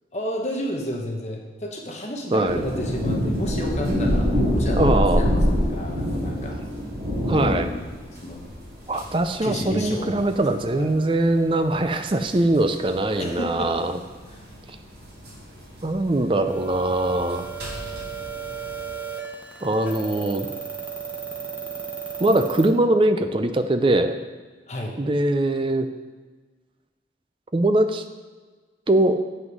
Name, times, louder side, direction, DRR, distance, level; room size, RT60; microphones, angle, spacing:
voice 1, 0.1-6.6 8.2-8.5 9.4-10.1 10.8-11.0 13.2-13.7 14.3-14.4 24.7-25.0, equal, 40° left, 0 dB, 1.0 m, -31 dB
voice 2, 2.3-2.6 4.8-5.2 7.3-7.7 8.9-13.9 15.8-17.5 19.6-20.5 22.2-24.2 25.0-25.9 27.5-28.0 28.9-29.2, right 1 dB, 30° right, 8 dB, 0.5 m, -21 dB
sound 1, 2.5-18.9, equal, 65° right, 2.4 m, -27 dB
sound 2, 16.5-22.7, right 6 dB, 10° right, 1.0 m, -35 dB
7.9 x 6.0 x 5.3 m, 1.4 s
head